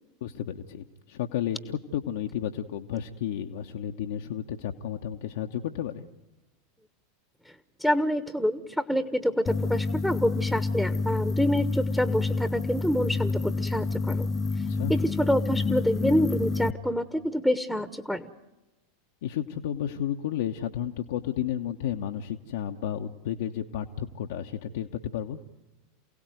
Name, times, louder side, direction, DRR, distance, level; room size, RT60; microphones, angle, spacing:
voice 1, 0.2-6.1 14.7-14.9 19.2-25.4, left 10 dB, 65° left, 4 dB, 1.1 m, -32 dB
voice 2, 7.8-14.3 14.6-14.7 14.9-18.3, equal, 5° right, 11 dB, 1.3 m, -27 dB
sound 1, 9.5-16.7, left 3 dB, 25° left, 0.8 m, -28 dB
28.5 x 17.5 x 9.3 m, 1.0 s
figure-of-eight pair, 85°, 0 cm